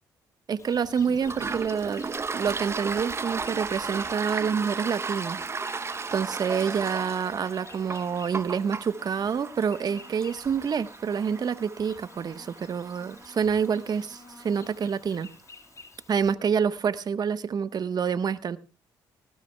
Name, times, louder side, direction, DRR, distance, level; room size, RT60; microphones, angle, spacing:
voice 1, 0.5-2.0 2.3-5.4 5.7-15.3 16.1-18.6, right 6 dB, 45° right, 1.2 m, -27 dB
Insect, 0.6-16.3, left 4 dB, 35° left, 1.9 m, -51 dB
Toilet flush, 1.2-14.6, right 4 dB, 30° right, 0.8 m, -35 dB
19.5 x 16.5 x 2.3 m
hypercardioid pair, 60°, 9 cm